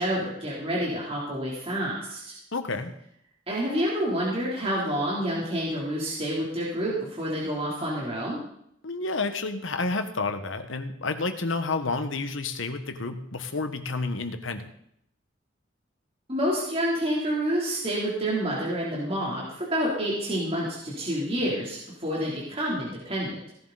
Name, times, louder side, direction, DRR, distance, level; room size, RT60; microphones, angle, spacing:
voice 1, 0.0-2.2 3.5-8.4 16.3-23.4, equal, 30° right, -5 dB, 3.4 m, -28 dB
voice 2, 2.5-2.9 8.8-14.7, left 3 dB, 90° left, 8 dB, 1.3 m, -30 dB
17.0 x 11.0 x 4.1 m, 0.72 s
head